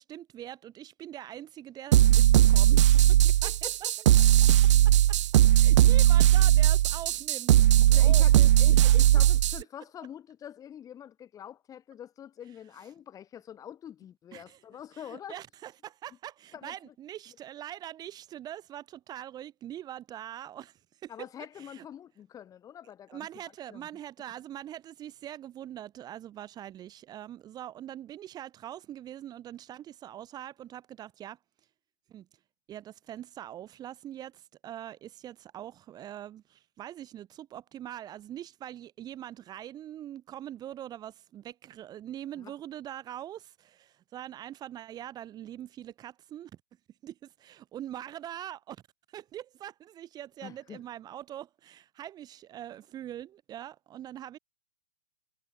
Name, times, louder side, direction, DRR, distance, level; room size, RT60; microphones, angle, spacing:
voice 1, 0.0-3.7 4.6-8.5 8.8-8.9 14.3-14.6 14.9-21.3 21.6-21.9 23.1-31.4 32.1-32.3 32.7-46.5 47.0-48.8 49.1-54.4, right 11 dB, 20° right, 3.9 m, -43 dB
sound 1, 1.9-9.6, right 13 dB, 55° right, 0.4 m, -19 dB
voice 2, 3.4-3.9 5.8-6.0 7.9-15.4 16.5-16.9 21.1-23.3 23.7-23.9 42.3-42.5 50.4-50.8, left 9 dB, 20° left, 5.0 m, -45 dB
hypercardioid pair, 130°, 18 cm